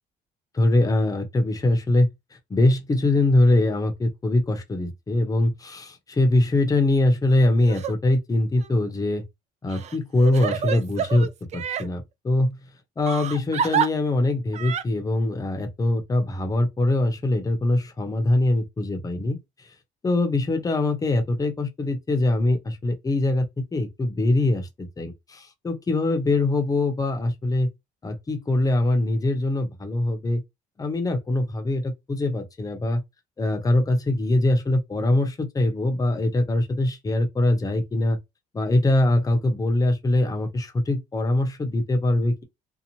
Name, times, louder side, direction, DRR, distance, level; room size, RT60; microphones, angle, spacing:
voice 1, 0.5-2.1 2.5-9.2 9.6-11.3 11.5-12.6 13.0-19.4 20.0-23.5 23.7-27.7 28.0-30.4 30.8-33.0 33.4-38.2 38.5-42.4, left 2 dB, 20° left, 0.7 m, -23 dB
Crying sobbing, 7.6-7.9 8.6-8.7 9.7-11.9 13.1-13.9 14.5-14.8, right 7 dB, 40° right, 0.4 m, -28 dB
2.7 x 2.1 x 2.9 m
cardioid pair, 110°, 17 cm